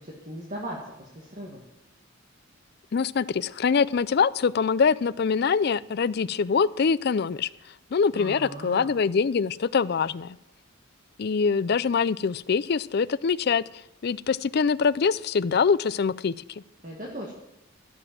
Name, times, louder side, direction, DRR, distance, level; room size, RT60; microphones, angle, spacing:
voice 1, 0.0-1.6 8.1-8.9 16.8-17.3, right 1 dB, 40° right, -2 dB, 1.8 m, -38 dB
voice 2, 2.9-7.5 7.9-10.4 11.2-13.6 14.0-16.3, left 5 dB, 50° left, 17 dB, 0.4 m, -24 dB
13.0 x 7.9 x 7.5 m, 0.92 s
head